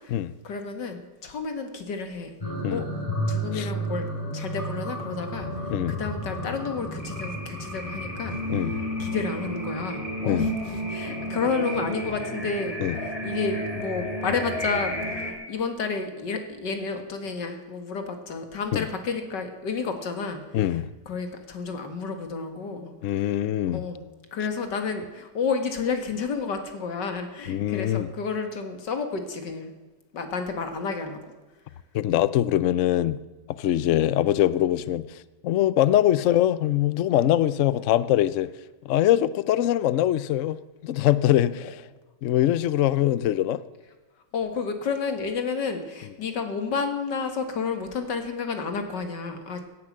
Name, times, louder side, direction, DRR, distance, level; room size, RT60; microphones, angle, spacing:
voice 1, 0.4-2.3 2.7-2.8 3.3-5.5 5.9-8.4 8.7-12.8 13.0-20.4 21.1-23.4 23.7-24.1 24.3-29.7 30.1-31.2 34.0-34.2 41.6-41.7 44.3-49.6, left 5 dB, 85° left, 2.4 m, -31 dB
sound 1, 2.4-15.3, equal, 20° left, 3.7 m, -31 dB
voice 2, 20.5-20.8 23.0-23.8 27.5-28.1 31.9-33.2 33.6-35.0 35.4-38.5 38.8-41.7 42.2-43.6, left 12 dB, 65° left, 0.8 m, -23 dB
17.0 x 10.0 x 7.5 m
omnidirectional pair, 1.8 m